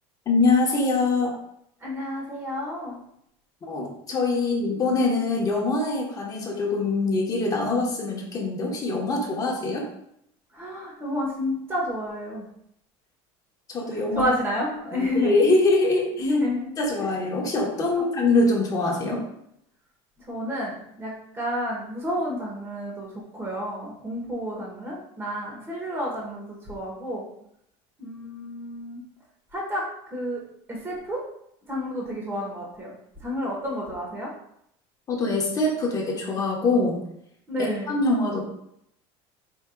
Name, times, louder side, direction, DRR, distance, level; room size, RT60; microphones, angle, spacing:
voice 1, 0.3-1.4 3.6-9.8 13.7-14.2 14.9-16.3 16.8-19.2 35.1-37.0 37.9-38.4, left 2 dB, 30° left, -1 dB, 1.1 m, -23 dB
voice 2, 1.8-3.0 10.5-12.5 13.9-15.4 16.2-16.7 17.0-17.1 17.9-18.0 20.2-27.2 28.0-29.0 29.5-29.8 30.1-30.4 30.7-31.2 31.6-32.9 33.2-34.3 37.5-38.0, left 1 dB, 20° right, -3 dB, 1.3 m, -30 dB
4.6 x 4.4 x 2.3 m, 0.75 s
supercardioid pair, 130°, 12 cm